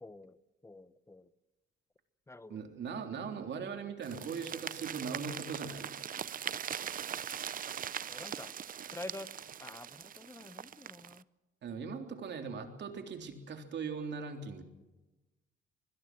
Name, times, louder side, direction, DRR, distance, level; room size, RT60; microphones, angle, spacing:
voice 1, 0.0-0.4 0.6-1.3 2.3-2.6 8.1-8.5 8.9-9.3 9.6-11.2, left 2 dB, 15° left, 14 dB, 1.1 m, -47 dB
voice 2, 2.5-6.1 11.6-14.6, right 5 dB, 60° right, 5 dB, 3.5 m, -40 dB
sound 1, 4.0-11.2, right 8 dB, 45° right, 0.6 m, -41 dB
25.5 x 21.0 x 6.2 m, 1.1 s
cardioid pair, 90°, 20 cm